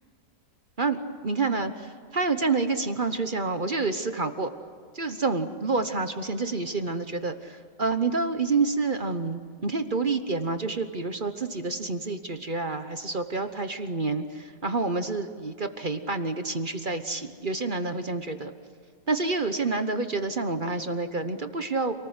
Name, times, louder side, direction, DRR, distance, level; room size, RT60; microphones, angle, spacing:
voice 1, 1.2-4.5 4.9-18.5 19.1-21.9, right 3 dB, 35° right, 8 dB, 1.0 m, -28 dB
28.0 x 19.5 x 8.0 m, 2.1 s
omnidirectional pair, 1.9 m